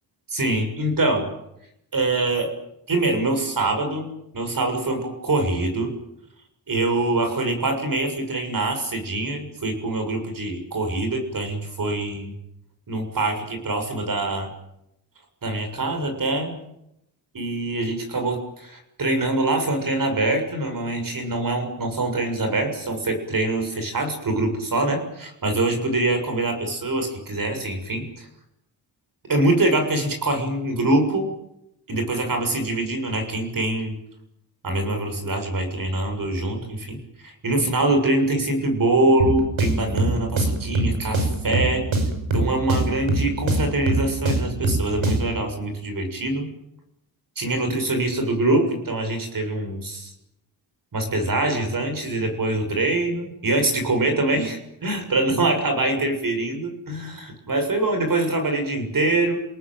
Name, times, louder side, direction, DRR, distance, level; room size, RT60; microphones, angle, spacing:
voice 1, 0.3-1.3 1.9-2.5 2.9-4.1 4.3-5.9 6.7-12.3 12.9-14.5 15.4-16.6 17.3-28.3 29.3-31.3 31.9-34.0 34.6-41.8 42.3-46.5 47.4-50.1 50.9-59.4, right 2 dB, 45° right, 5 dB, 7.1 m, -24 dB
sound 1, 39.2-45.4, right 2 dB, 80° right, 6.3 m, -24 dB
29.5 x 18.5 x 9.2 m, 0.82 s
wide cardioid pair, 160°, 46 cm